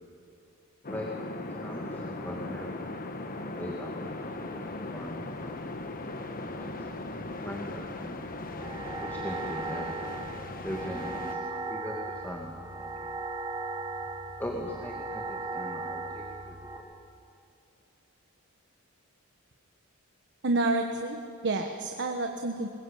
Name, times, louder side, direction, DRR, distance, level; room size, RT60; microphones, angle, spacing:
sound 1, 0.8-11.3, left 2 dB, 40° left, 1.4 m, -38 dB
voice 1, 1.5-2.9 3.4-5.5 6.4-6.9 7.4-8.2 9.0-10.0 10.6-13.1 14.4-16.9, equal, 10° left, -1 dB, 2.1 m, -40 dB
sound 2, 8.6-16.8, right 3 dB, 20° right, 1.9 m, -37 dB
voice 2, 20.4-22.7, right 2 dB, 55° right, 4 dB, 1.3 m, -29 dB
21.5 x 21.5 x 8.6 m, 2.6 s
head